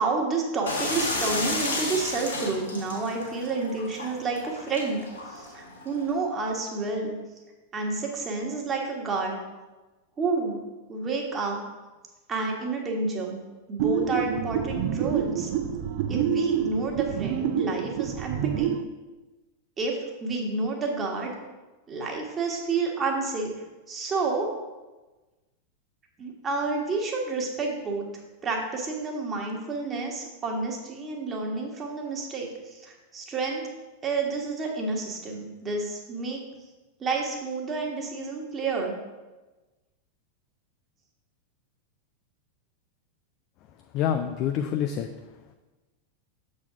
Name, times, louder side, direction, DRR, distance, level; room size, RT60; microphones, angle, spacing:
voice 1, 0.0-5.0 5.3-7.1 7.7-9.4 10.2-10.6 10.9-11.6 12.3-13.4 13.7-15.5 16.1-18.8 19.8-21.3 21.9-23.5 23.9-24.5 26.2-28.1 28.4-33.7 34.0-36.4 37.0-39.0, right 3 dB, 25° right, 0 dB, 1.3 m, -29 dB
sound 1, 0.7-6.1, left 2 dB, 70° left, 1.5 m, -32 dB
sound 2, 13.8-18.8, right 9 dB, 50° right, 0.4 m, -27 dB
voice 2, 43.9-45.5, left 9 dB, 40° left, 7 dB, 0.4 m, -28 dB
7.0 x 4.2 x 4.7 m, 1.2 s
figure-of-eight pair, 90°, 0 cm